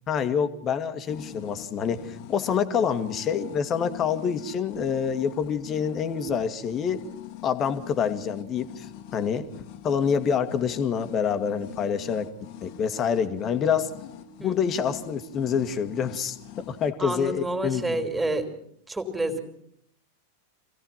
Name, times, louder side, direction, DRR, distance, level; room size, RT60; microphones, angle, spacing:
voice 1, 0.1-7.0 7.4-9.5 9.8-12.3 12.6-13.9 14.4-16.4 16.7-18.0, left 7 dB, 30° left, 9 dB, 1.9 m, -27 dB
sound 1, 1.0-16.9, left 12 dB, 45° left, 1.9 m, -44 dB
voice 2, 14.4-14.8 17.0-18.5 18.9-19.4, right 1 dB, 10° right, 7 dB, 3.4 m, -29 dB
26.5 x 17.0 x 5.9 m, 0.69 s
figure-of-eight pair, 90°, 0 cm